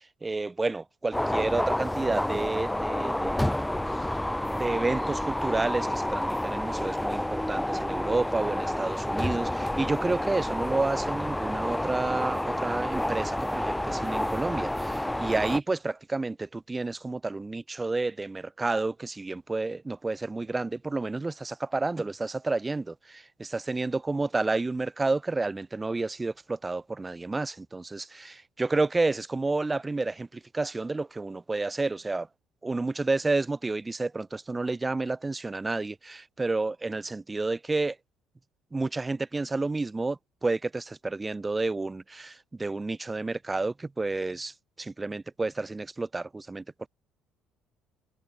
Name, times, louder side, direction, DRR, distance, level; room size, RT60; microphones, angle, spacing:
voice 1, 0.2-3.8 4.5-32.3 32.6-38.0 38.7-46.9, right 3 dB, 20° right, 1.6 m, -30 dB
sound 1, 1.1-15.6, left 1 dB, 5° left, 0.5 m, -29 dB
figure-of-eight pair, 50°, 0 cm